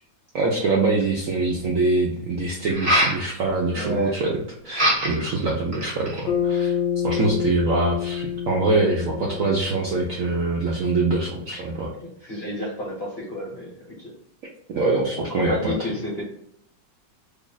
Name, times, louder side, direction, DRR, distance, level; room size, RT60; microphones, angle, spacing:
voice 1, 0.3-4.3 4.6-6.7 7.0-11.9 14.7-15.7, right 3 dB, 70° right, -2 dB, 0.8 m, -24 dB
sound 1, 1.0-1.1 2.7-3.2 4.7-5.3 5.7-6.3, equal, 25° right, 0.7 m, -22 dB
voice 2, 3.7-4.2 11.5-11.6 12.0-14.1 15.2-16.2, equal, 45° left, -4 dB, 0.8 m, -31 dB
Bass guitar, 6.3-10.7, left 9 dB, 75° left, 1.3 m, -28 dB
3.1 x 2.4 x 3.8 m, 0.72 s
omnidirectional pair, 2.0 m